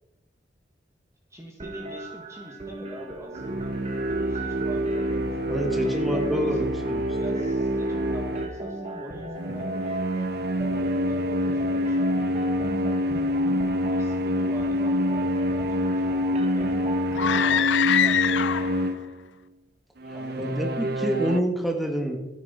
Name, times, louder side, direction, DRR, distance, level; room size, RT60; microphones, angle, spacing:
voice 1, 1.3-6.7 7.2-9.8 10.6-12.7 14.0-19.0 20.1-20.6, right 1 dB, 15° right, 0 dB, 1.5 m, -43 dB
sound 1, 1.6-17.6, right 2 dB, 35° right, 1.3 m, -37 dB
sound 2, 3.3-8.6 9.4-19.2 20.0-21.4, equal, 60° right, 0.7 m, -26 dB
voice 2, 5.5-6.6 6.9-7.0 7.3-7.4 20.4-22.2, right 1 dB, ahead, 1 dB, 1.7 m, -27 dB
sound 3, 17.1-18.9, left 9 dB, 75° left, 0.4 m, -23 dB
14.0 x 9.6 x 4.2 m, 1.0 s
head